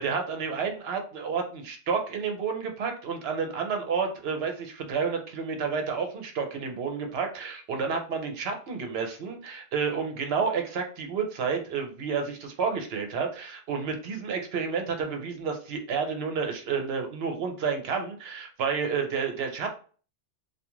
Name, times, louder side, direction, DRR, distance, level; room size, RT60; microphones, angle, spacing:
voice 1, 0.0-19.7, right 5 dB, 65° right, 4 dB, 0.8 m, -30 dB
2.3 x 2.3 x 3.0 m, 0.40 s
omnidirectional pair, 1.2 m